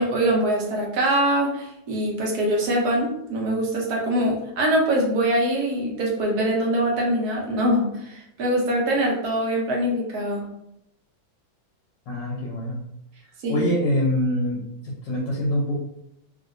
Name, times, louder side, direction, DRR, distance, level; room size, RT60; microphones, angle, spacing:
voice 1, 0.0-10.5 13.4-13.7, right 1 dB, 60° right, -2 dB, 1.2 m, -23 dB
voice 2, 12.1-12.8 13.5-15.8, left 1 dB, 70° left, -3 dB, 1.3 m, -25 dB
3.1 x 2.7 x 2.5 m, 0.81 s
omnidirectional pair, 2.1 m